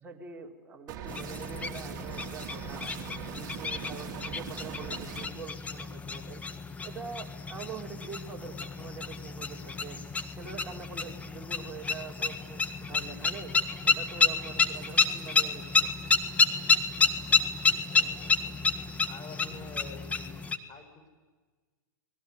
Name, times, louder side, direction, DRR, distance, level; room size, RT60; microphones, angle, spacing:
voice 1, 0.0-2.9 3.3-6.4 6.8-10.0 10.3-13.5 13.8-16.1, right 6 dB, 15° right, -1 dB, 4.6 m, -44 dB
sound 1, 0.9-5.3, right 10 dB, 35° right, 3.0 m, -41 dB
sound 2, 1.1-20.6, left 4 dB, 15° left, 1.7 m, -30 dB
voice 2, 17.9-18.6 19.1-21.1, left 3 dB, 30° left, 4 dB, 6.8 m, -48 dB
29.5 x 21.0 x 9.7 m, 1.4 s
figure-of-eight pair, 105°, 11 cm